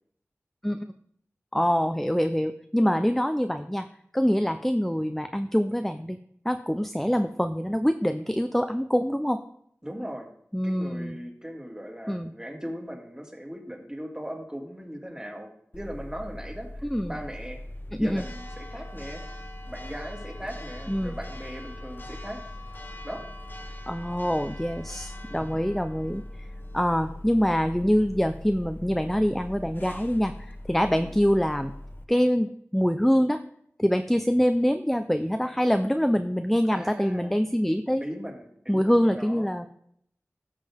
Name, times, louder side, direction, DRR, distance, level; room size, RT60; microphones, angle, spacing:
voice 1, 1.5-3.9 4.1-6.2 6.4-9.4 10.5-11.1 12.1-12.3 16.8-17.2 18.0-18.3 20.9-21.1 23.9-26.5 26.7-31.7 32.1-33.4 33.8-38.0 38.7-39.7, equal, 5° left, 8 dB, 0.6 m, -25 dB
voice 2, 9.8-10.3 10.6-17.6 18.0-19.2 19.7-22.4 23.0-23.2 30.9-31.2 36.7-37.3 38.0-39.7, equal, 15° right, 1 dB, 2.2 m, -39 dB
Church bell, 15.7-32.0, left 1 dB, 40° left, 1.0 m, -40 dB
14.5 x 5.6 x 3.6 m, 0.70 s
wide cardioid pair, 40°, 5 cm